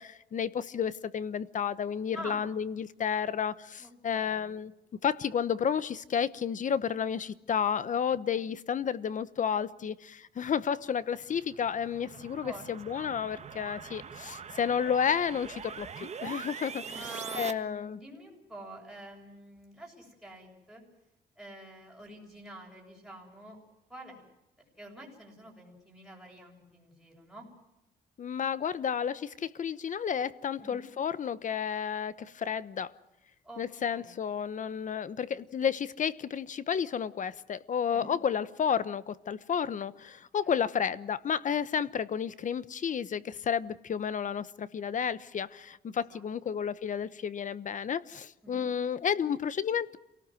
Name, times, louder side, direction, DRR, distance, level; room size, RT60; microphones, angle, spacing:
voice 1, 0.0-4.7 5.0-17.1 17.4-18.0 28.2-32.9 33.6-50.0, left 7 dB, 45° left, 1.0 m, -31 dB
voice 2, 2.1-2.5 3.8-4.6 8.3-8.5 12.1-12.7 12.9-13.1 16.9-20.8 21.4-23.6 23.9-24.3 24.8-27.5 30.6-30.8 33.4-34.2 37.9-38.1 40.4-40.5 45.9-46.5 48.4-48.6, right 1 dB, ahead, 7.8 m, -48 dB
sound 1, 11.0-17.5, right 6 dB, 40° right, 1.5 m, -43 dB
28.0 x 18.5 x 7.8 m
cardioid pair, 130°, 18 cm